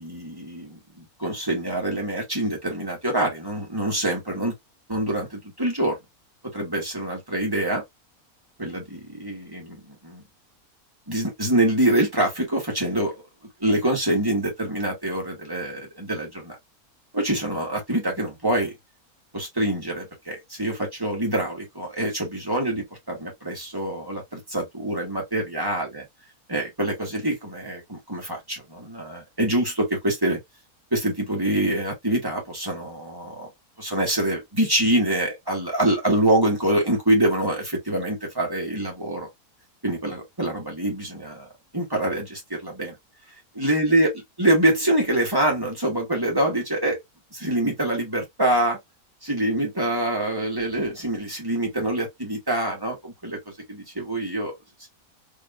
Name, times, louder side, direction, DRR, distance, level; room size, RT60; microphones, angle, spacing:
voice 1, 0.0-4.6 4.9-6.0 6.5-7.8 8.6-10.2 11.1-13.2 13.6-16.6 17.1-18.7 19.3-26.0 26.5-30.4 30.9-33.5 33.8-39.3 39.8-41.5 41.7-43.0 43.5-44.1 44.4-47.0 47.3-48.8 49.2-53.4 53.7-54.6, right 1 dB, 15° right, 1.9 m, -25 dB
3.7 x 3.6 x 2.6 m
omnidirectional pair, 1.6 m